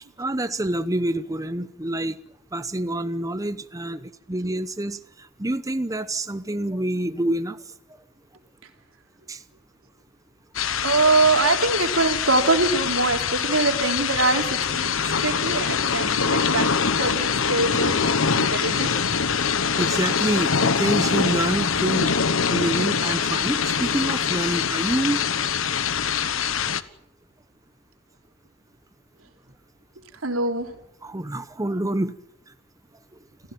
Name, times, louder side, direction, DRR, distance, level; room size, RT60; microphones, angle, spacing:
voice 1, 0.2-2.2 2.5-5.0 5.4-7.6 9.3-9.4 15.0-15.1 16.2-16.3 19.8-22.1 22.5-25.2 31.0-32.1, right 1 dB, 15° right, 11 dB, 0.9 m, -27 dB
sound 1, 10.5-26.8, left 6 dB, 75° left, 1.2 m, -24 dB
voice 2, 10.8-14.9 15.2-18.9 30.2-30.7, right 3 dB, 90° right, 4 dB, 3.6 m, -23 dB
29.5 x 15.5 x 8.9 m, 0.78 s
head